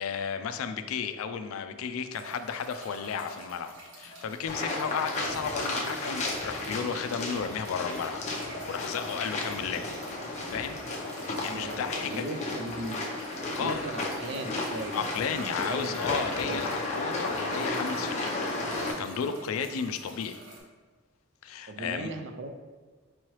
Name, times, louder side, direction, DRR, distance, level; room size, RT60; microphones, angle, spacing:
voice 1, 0.0-8.2 8.7-9.9 10.5-10.8 11.2-12.2 13.6-13.9 14.9-16.7 17.0-18.4 18.8-20.4 21.4-22.1, left 6 dB, 80° left, 9 dB, 0.3 m, -33 dB
sound 1, 2.1-20.6, right 1 dB, 90° right, 1.0 m, -47 dB
sound 2, 4.5-18.9, left 2 dB, 35° left, 0.6 m, -33 dB
voice 2, 11.2-13.0 13.6-15.9 16.4-16.8 21.7-22.6, right 2 dB, 55° right, 6 dB, 0.3 m, -38 dB
4.6 x 3.1 x 2.9 m, 1.4 s
head